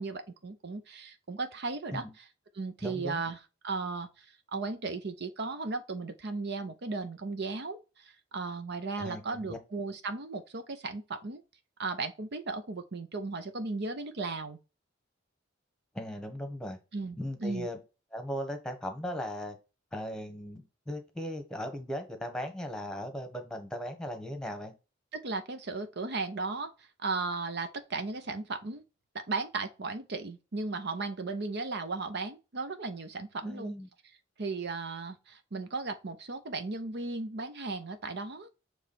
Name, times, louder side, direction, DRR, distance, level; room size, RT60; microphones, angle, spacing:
voice 1, 0.0-2.3 2.5-3.4 3.6-11.4 11.8-14.6 16.9-17.7 25.1-28.8 29.1-33.7 34.4-38.5, right 3 dB, 60° right, 0.7 m, -36 dB
voice 2, 2.8-3.2 9.0-9.6 15.9-16.8 17.2-17.8 18.1-19.5 19.9-24.7 33.4-33.9, equal, 5° left, 1.3 m, -38 dB
7.2 x 3.3 x 4.3 m
head